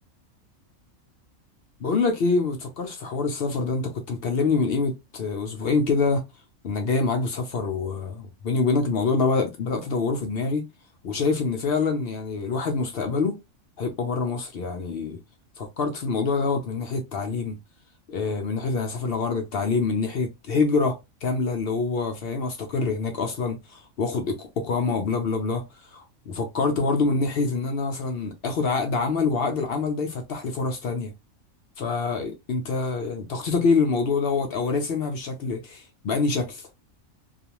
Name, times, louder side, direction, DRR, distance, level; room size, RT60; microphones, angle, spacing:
voice 1, 1.8-6.2 6.6-10.7 11.0-13.4 13.8-15.2 15.6-17.6 18.1-25.6 25.9-31.1 31.8-36.6, left 4 dB, 65° left, 0.6 m, -26 dB
2.4 x 2.3 x 2.9 m
omnidirectional pair, 1.4 m